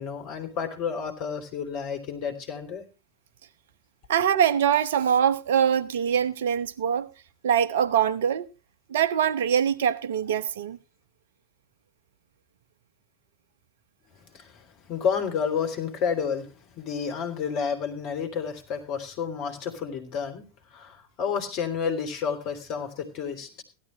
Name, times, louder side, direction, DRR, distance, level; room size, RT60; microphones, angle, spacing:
voice 1, 0.0-2.8 14.2-20.4 20.7-23.6, left 6 dB, 40° left, 3.0 m, -30 dB
voice 2, 4.1-7.1 7.4-8.5 8.9-10.8, right 8 dB, 60° right, 0.8 m, -23 dB
16.5 x 12.0 x 3.2 m
figure-of-eight pair, 90°, 0 cm